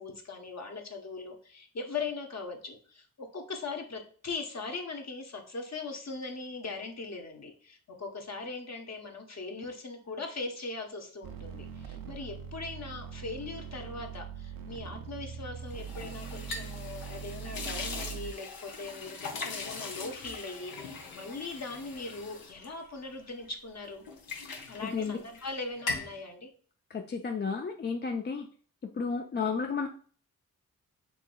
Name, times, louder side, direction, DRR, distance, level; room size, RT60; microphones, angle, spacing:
voice 1, 0.0-24.0 24.7-26.5, left 3 dB, 45° left, 3 dB, 1.0 m, -40 dB
sound 1, 11.2-18.3, right 7 dB, 70° right, 0.6 m, -42 dB
sound 2, 15.7-23.5 23.8-25.5 25.8-26.2, left 4 dB, 75° left, 0.8 m, -41 dB
voice 2, 24.8-25.2 26.9-28.5 29.0-29.9, left 5 dB, 30° left, 3 dB, 0.4 m, -32 dB
4.7 x 3.0 x 2.2 m, 0.44 s
supercardioid pair, 40°, 36 cm